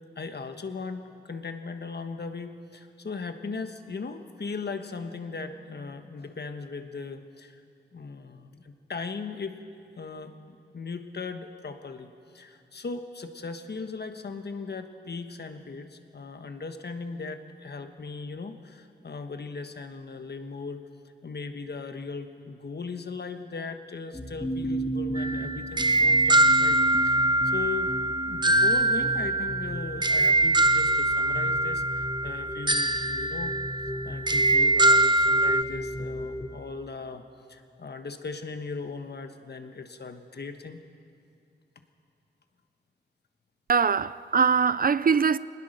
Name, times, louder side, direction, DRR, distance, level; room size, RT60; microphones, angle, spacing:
voice 1, 0.2-7.6 7.9-9.6 10.0-20.8 21.2-27.9 28.3-33.6 34.0-37.2 37.5-40.8, left 4 dB, 60° left, 1.3 m, -38 dB
sound 1, 24.1-36.5, equal, 15° left, 0.9 m, -35 dB
sound 2, 25.2-35.6, right 2 dB, 25° right, 0.8 m, -23 dB
voice 2, 43.7-45.4, right 6 dB, 50° right, 0.4 m, -22 dB
23.5 x 20.0 x 6.6 m
wide cardioid pair, 115°, 19 cm